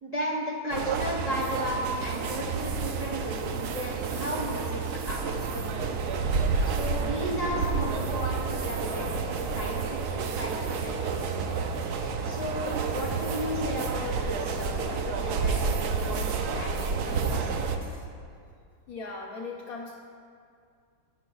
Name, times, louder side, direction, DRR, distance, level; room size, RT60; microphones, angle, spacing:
voice 1, 0.0-5.9 6.6-11.6 12.2-17.6, equal, 30° right, -2 dB, 0.9 m, -35 dB
sound 1, 0.7-17.8, right 5 dB, 70° right, 1.0 m, -30 dB
sound 2, 2.1-18.1, left 2 dB, 10° right, 0.6 m, -48 dB
voice 2, 11.6-12.2 18.9-19.9, left 3 dB, 65° left, 0 dB, 1.0 m, -41 dB
18.0 x 6.3 x 2.3 m, 2.3 s
omnidirectional pair, 2.0 m